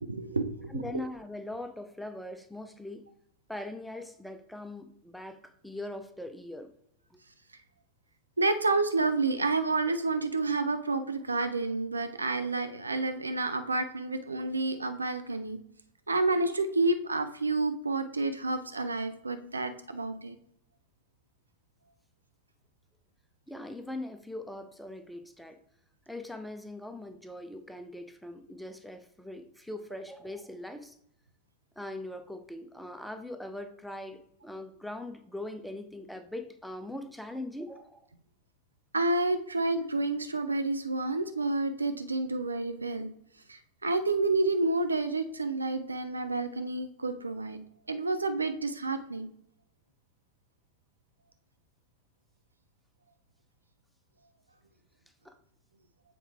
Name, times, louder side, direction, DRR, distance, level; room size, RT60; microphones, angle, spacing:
voice 1, 0.1-1.0 8.4-15.6 16.1-20.4 38.9-43.1 43.5-47.6 47.9-49.3, right 3 dB, 80° right, 9 dB, 0.5 m, -29 dB
voice 2, 0.7-3.0 3.5-6.7 7.1-7.2 23.5-25.6 26.1-30.9 31.8-38.0 55.2-55.4, left 1 dB, ahead, 8 dB, 0.6 m, -41 dB
7.2 x 4.5 x 3.5 m, 0.71 s
figure-of-eight pair, 90°, 0 cm